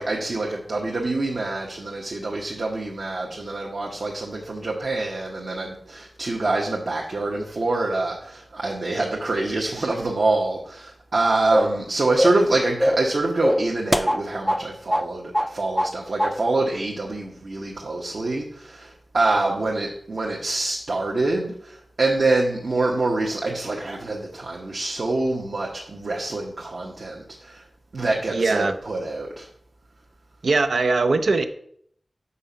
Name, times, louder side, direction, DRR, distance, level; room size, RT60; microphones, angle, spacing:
voice 1, 0.0-27.6 27.9-29.5, right 2 dB, 70° right, -2 dB, 1.0 m, -25 dB
sound 1, 11.5-11.8 12.2-12.5 12.8-13.1 13.4-14.6 14.9-15.1 15.3-15.9 16.2-16.4, equal, ahead, 0.3 m, -22 dB
voice 2, 28.3-28.7 30.4-31.4, right 3 dB, 85° right, 7 dB, 0.5 m, -21 dB
5.4 x 5.1 x 5.5 m, 0.67 s
wide cardioid pair, 65°, 0 cm